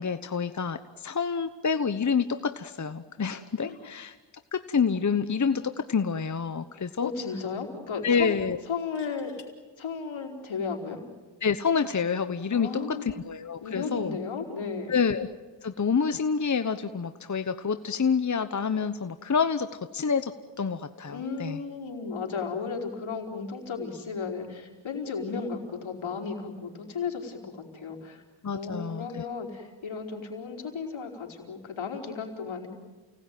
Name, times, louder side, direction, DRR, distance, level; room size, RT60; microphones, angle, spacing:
voice 1, 0.0-4.2 4.5-7.1 8.0-8.6 11.4-14.2 14.9-15.3 15.6-21.6 28.4-29.2, left 6 dB, 40° left, 10 dB, 1.1 m, -28 dB
sound 1, 5.9-6.1 6.4-6.5 8.7-9.5 11.3-11.6, left 5 dB, 60° left, 4.2 m, -55 dB
voice 2, 7.0-8.4 8.7-9.3 9.8-11.0 12.5-13.1 13.6-15.0 21.1-28.2 28.5-32.7, left 5 dB, 75° left, 1 dB, 4.8 m, -34 dB
29.5 x 18.5 x 9.3 m, 1.4 s
cardioid pair, 55°, 47 cm